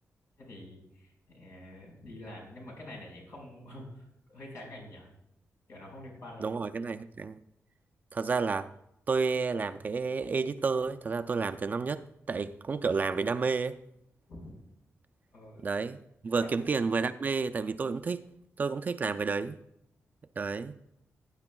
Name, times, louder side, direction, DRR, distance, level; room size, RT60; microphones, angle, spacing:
voice 1, 0.4-5.1 5.7-6.5 14.3-14.6 15.3-15.6 16.4-16.5, left 1 dB, 75° left, 4.8 m, -47 dB
voice 2, 6.4-7.4 8.1-8.7 9.1-13.8 15.6-18.2 18.6-19.6 20.4-20.8, right 4 dB, 35° right, 0.4 m, -30 dB
18.0 x 9.7 x 2.3 m
wide cardioid pair, 150°, 5 cm